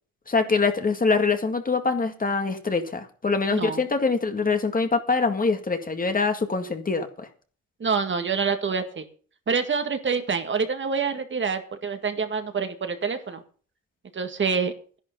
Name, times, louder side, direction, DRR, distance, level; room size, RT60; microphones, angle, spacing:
voice 1, 0.3-7.3, left 4 dB, 30° left, 7 dB, 2.0 m, -24 dB
voice 2, 7.8-9.1 9.5-13.4 14.1-14.7, right 5 dB, 40° right, 7 dB, 1.9 m, -26 dB
11.5 x 11.0 x 5.4 m, 0.42 s
cardioid pair, 90°, 30 cm